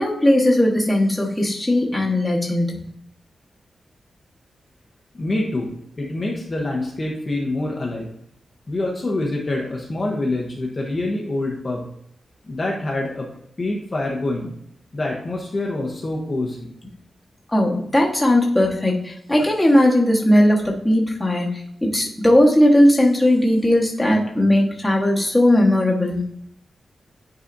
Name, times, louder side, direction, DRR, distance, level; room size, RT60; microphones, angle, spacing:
voice 1, 0.0-2.8 17.5-26.2, left 1 dB, 10° left, -3 dB, 1.3 m, -18 dB
voice 2, 5.1-8.1 8.7-11.8 12.5-13.3 13.6-14.5 14.9-16.7, left 2 dB, 30° left, -2 dB, 0.9 m, -26 dB
9.9 x 4.0 x 2.6 m, 0.72 s
wide cardioid pair, 165°, 0 cm